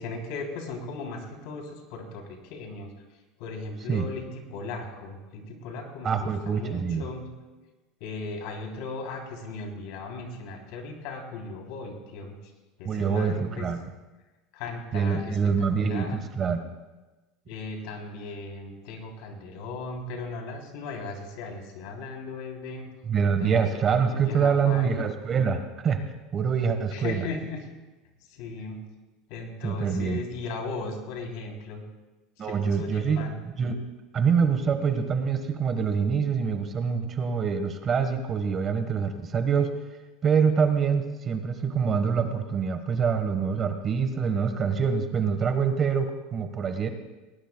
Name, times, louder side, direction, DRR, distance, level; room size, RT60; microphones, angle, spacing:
voice 1, 0.0-7.3 8.0-12.5 12.8-13.7 14.5-16.1 17.5-22.9 23.4-25.0 26.9-27.7 28.3-28.8 29.3-31.8 32.4-33.3, left 3 dB, 70° left, 1 dB, 3.3 m, -37 dB
voice 2, 6.0-7.1 12.8-13.8 14.9-16.6 23.1-26.0 26.3-27.2 29.6-30.2 32.4-33.7 34.1-39.7 40.2-46.9, right 6 dB, 30° right, 7 dB, 1.4 m, -25 dB
19.0 x 18.5 x 2.3 m, 1.1 s
supercardioid pair, 125°, 0 cm